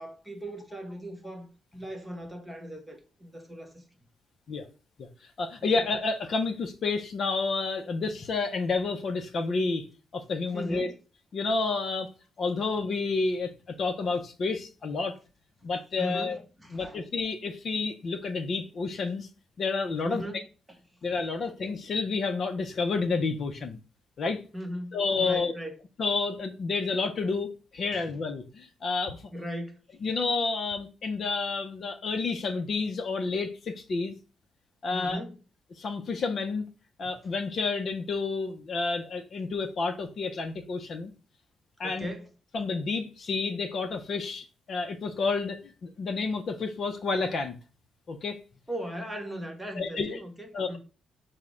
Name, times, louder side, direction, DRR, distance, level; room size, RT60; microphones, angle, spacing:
voice 1, 0.0-3.8 5.6-5.8 10.5-11.0 15.6-15.7 16.0-17.0 20.0-20.4 21.4-21.5 24.5-25.7 27.9-28.1 29.3-29.8 34.9-35.4 41.8-42.3 48.7-50.8, equal, 5° right, 0.8 m, -38 dB
voice 2, 5.4-9.9 10.1-10.9 11.3-12.1 12.4-15.2 15.6-16.4 16.7-19.3 19.6-20.2 21.0-23.8 24.2-24.4 24.9-25.5 26.0-29.2 30.0-34.1 34.8-35.2 35.8-36.7 37.0-41.1 41.8-42.1 42.5-47.5 48.1-48.4 49.8-50.2 50.5-50.8, left 4 dB, 45° left, 0.5 m, -30 dB
5.5 x 2.0 x 4.8 m
cardioid pair, 155°, 0 cm